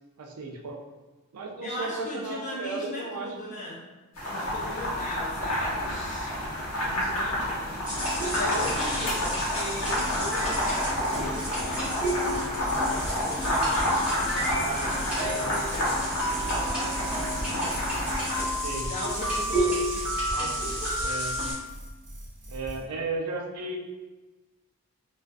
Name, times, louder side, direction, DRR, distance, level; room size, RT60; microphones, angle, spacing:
voice 1, 0.2-0.8 1.3-3.4 6.2-6.4 8.5-8.7 14.4-15.4 15.8-16.0 18.6-18.9 20.3-20.6 21.0-21.3 22.5-23.8, right 3 dB, 85° right, 2 dB, 0.4 m, -35 dB
voice 2, 1.6-3.9 4.2-6.3 6.8-7.8 8.2-11.9 12.7-16.0 16.3-18.0 18.9-20.1 20.4-21.1, left 1 dB, 35° left, -6 dB, 0.5 m, -38 dB
sound 1, 4.2-18.4, left 1 dB, 65° left, 0.8 m, -30 dB
sound 2, 7.9-21.5, equal, 5° right, 0.8 m, -31 dB
sound 3, 8.1-22.8, equal, 30° right, 0.6 m, -40 dB
2.4 x 2.3 x 2.3 m, 1.2 s
head